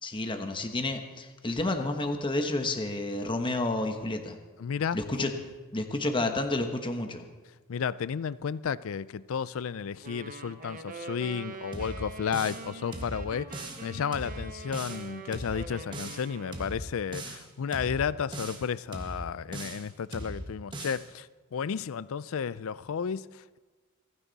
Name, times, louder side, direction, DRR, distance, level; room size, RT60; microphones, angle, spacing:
voice 1, 0.0-4.4 4.9-5.3 5.7-7.2, left 2 dB, 20° left, 1.1 m, -30 dB
voice 2, 4.6-5.3 7.7-23.6, left 7 dB, 65° left, 0.4 m, -33 dB
sound 1, 10.0-16.8, right 3 dB, 40° right, 1.1 m, -44 dB
sound 2, 11.7-12.7 12.9-13.8 14.1-15.0 15.3-16.2 16.5-17.4 17.7-18.6 18.9-19.9 20.1-21.0, right 1 dB, 20° right, 1.5 m, -39 dB
28.5 x 9.8 x 4.1 m
head